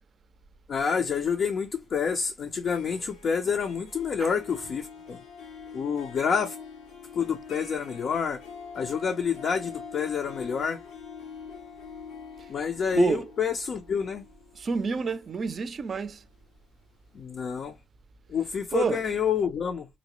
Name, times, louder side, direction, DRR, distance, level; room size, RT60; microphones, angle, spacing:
voice 1, 0.7-5.2 5.7-6.6 7.1-8.4 8.7-10.8 12.5-14.2 17.1-17.7 18.3-19.9, left 6 dB, 50° left, 0.5 m, -28 dB
Harp, 2.5-16.4, left 6 dB, 85° left, 0.8 m, -45 dB
voice 2, 12.9-13.3 14.6-16.2 18.7-19.0, right 5 dB, 40° right, 0.4 m, -28 dB
3.9 x 2.1 x 2.9 m
cardioid pair, 100°, 0 cm